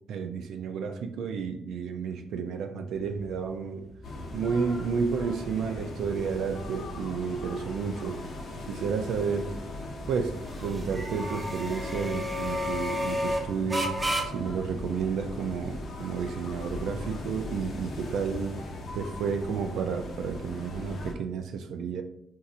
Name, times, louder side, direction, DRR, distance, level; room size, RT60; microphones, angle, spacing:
voice 1, 0.1-3.9 4.3-8.2 8.7-9.5 10.1-14.1 14.3-18.5 18.9-22.0, right 6 dB, 75° right, 6 dB, 0.3 m, -31 dB
sound 1, 2.9-20.1, equal, 20° right, 0.7 m, -37 dB
sound 2, 4.0-21.1, left 2 dB, 60° left, 0.7 m, -39 dB
4.1 x 2.6 x 2.5 m, 0.75 s
cardioid pair, 90°, 0 cm